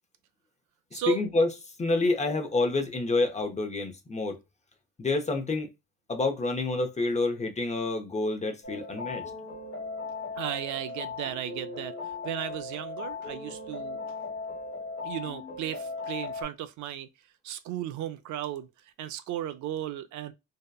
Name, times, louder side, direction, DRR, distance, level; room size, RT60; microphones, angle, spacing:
voice 1, 0.9-1.5 1.8-4.4 5.0-5.7 6.1-9.2, left 3 dB, 25° left, 0.6 m, -28 dB
sound 1, 8.6-16.4, left 3 dB, 45° left, 1.1 m, -38 dB
voice 2, 10.4-11.9 12.2-14.0 15.0-17.1 17.4-18.7 19.0-20.3, right 11 dB, 75° right, 0.4 m, -35 dB
2.8 x 2.1 x 2.2 m
cardioid pair, 90°, 30 cm